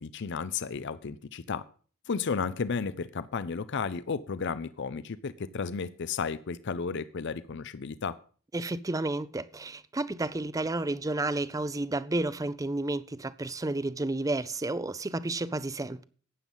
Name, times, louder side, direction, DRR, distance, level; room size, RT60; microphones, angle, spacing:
voice 1, 0.0-1.6 2.1-8.2, left 5 dB, 55° left, 0.5 m, -33 dB
voice 2, 8.5-16.0, right 2 dB, 15° right, 0.5 m, -31 dB
12.0 x 8.9 x 5.5 m
head